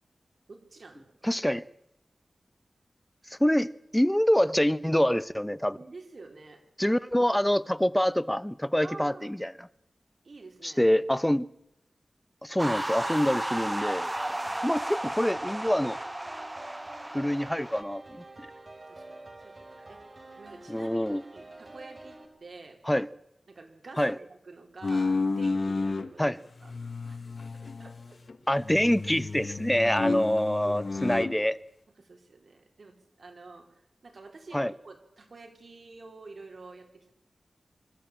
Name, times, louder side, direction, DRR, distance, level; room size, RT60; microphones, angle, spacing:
voice 1, 0.5-1.1 5.8-6.6 8.8-9.3 10.2-10.9 14.3-14.7 18.9-20.0 20.4-22.8 23.5-26.3 26.6-26.7 27.1-27.2 27.5-28.2 29.8-29.9 30.6-30.8 32.0-37.1, right 3 dB, 65° right, 4.0 m, -49 dB
voice 2, 1.2-1.6 3.3-5.8 6.8-9.7 10.6-11.5 12.4-14.1 14.6-16.0 17.1-18.5 20.7-21.2 22.9-23.1 24.0-24.2 26.2-26.4 28.5-31.6 34.5-34.7, equal, 10° left, 0.7 m, -26 dB
sound 1, 12.6-17.8, right 1 dB, 15° right, 0.9 m, -33 dB
sound 2, 12.7-22.3, right 2 dB, 40° right, 4.1 m, -48 dB
sound 3, 24.8-26.1 26.6-28.3 28.6-31.3, left 3 dB, 60° left, 1.1 m, -31 dB
25.0 x 13.5 x 8.9 m
wide cardioid pair, 70°, 0 cm